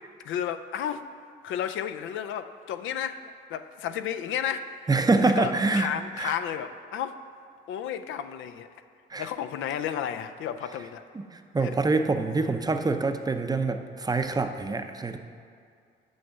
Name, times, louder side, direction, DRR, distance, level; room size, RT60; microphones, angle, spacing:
voice 1, 0.2-1.0 1.4-4.9 5.4-7.2 7.7-8.7 9.2-11.0 11.6-11.7, left 9 dB, 80° left, 10 dB, 0.5 m, -32 dB
voice 2, 4.9-6.3 9.1-9.3 11.1-15.2, right 3 dB, 20° right, 7 dB, 0.5 m, -26 dB
6.4 x 5.4 x 7.0 m, 2.3 s
cardioid pair, 90°, 20 cm